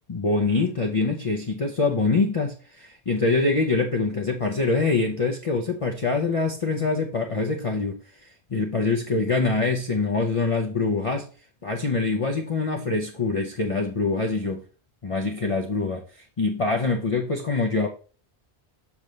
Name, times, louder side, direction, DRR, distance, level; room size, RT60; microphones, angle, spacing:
voice 1, 0.1-11.3 11.6-14.6 15.0-17.9, left 3 dB, 35° left, 2 dB, 0.7 m, -24 dB
7.1 x 5.2 x 3.2 m, 0.38 s
omnidirectional pair, 1.1 m